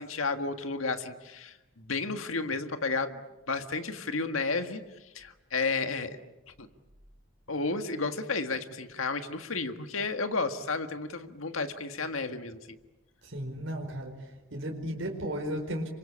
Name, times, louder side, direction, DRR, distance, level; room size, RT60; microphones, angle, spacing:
voice 1, 0.0-3.2 3.5-4.8 5.2-6.2 6.6-6.7 7.5-12.8, left 3 dB, 85° left, 8 dB, 1.7 m, -32 dB
voice 2, 13.2-15.9, equal, 65° right, 1 dB, 4.7 m, -35 dB
28.0 x 24.5 x 8.6 m, 1.1 s
head